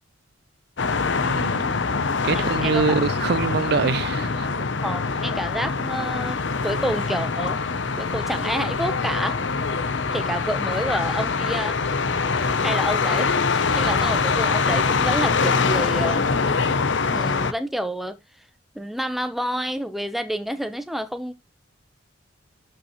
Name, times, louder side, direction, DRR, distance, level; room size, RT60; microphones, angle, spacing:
sound 1, 0.8-17.5, left 4 dB, 65° left, 0.7 m, -24 dB
voice 1, 1.2-1.7 2.2-4.5 12.5-12.6, right 5 dB, 55° right, 0.4 m, -24 dB
voice 2, 2.3-3.0 4.8-7.6 8.0-9.4 10.1-11.8 12.6-16.3 17.1-18.2 18.7-21.3, equal, ahead, 0.8 m, -29 dB
12.0 x 5.6 x 3.1 m
head